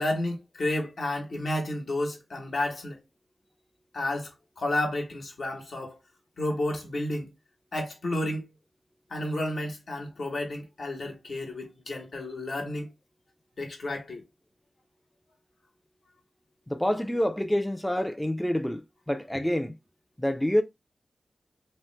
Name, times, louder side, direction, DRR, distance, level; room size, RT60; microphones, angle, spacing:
voice 1, 0.0-3.0 3.9-6.0 6.4-7.3 7.7-8.5 9.1-12.9 13.6-14.2, left 1 dB, 70° left, 1.0 m, -31 dB
voice 2, 16.7-18.8 19.1-19.7 20.2-20.6, left 1 dB, 10° left, 0.3 m, -27 dB
3.0 x 2.0 x 3.2 m
wide cardioid pair, 75°, 0 cm